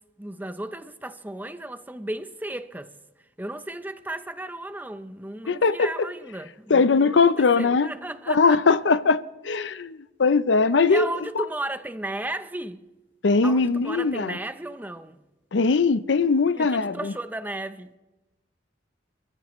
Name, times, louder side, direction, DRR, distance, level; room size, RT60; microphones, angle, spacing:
voice 1, 0.2-2.9 3.4-8.8 9.6-9.8 10.9-12.8 13.4-15.2 16.5-18.0, right 1 dB, 10° right, 0.6 m, -35 dB
voice 2, 5.5-5.9 6.7-7.9 8.3-9.2 9.4-11.1 13.2-14.4 15.5-17.1, left 4 dB, 80° left, 0.6 m, -20 dB
30.0 x 14.0 x 3.1 m
head